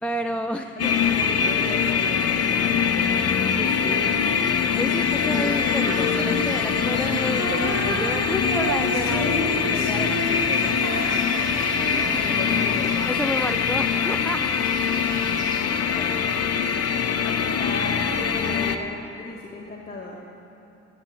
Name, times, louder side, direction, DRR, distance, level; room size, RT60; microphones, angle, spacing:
voice 1, 0.0-0.9 3.5-4.1 4.8-10.8 11.9-12.0 13.1-14.5 16.0-16.2, equal, 5° left, 5 dB, 0.3 m, -31 dB
voice 2, 0.6-3.2 11.4-13.1 15.4-16.6 17.1-20.2, left 2 dB, 30° left, -4 dB, 1.4 m, -37 dB
sound 1, 0.8-18.8, left 7 dB, 55° left, 0.8 m, -23 dB
sound 2, 4.2-15.6, equal, 15° right, 3.3 m, -39 dB
Female singing, 5.6-13.0, right 2 dB, 80° right, 1.6 m, -31 dB
12.0 x 7.2 x 7.7 m, 3.0 s
cardioid pair, 90°, 30 cm